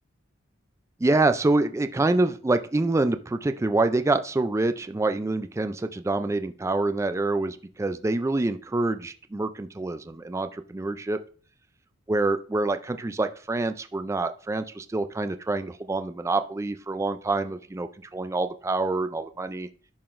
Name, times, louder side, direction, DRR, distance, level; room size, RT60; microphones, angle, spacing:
voice 1, 1.0-11.2 12.1-19.7, right 2 dB, 15° right, 9 dB, 0.3 m, -26 dB
11.0 x 3.8 x 2.5 m, 0.41 s
head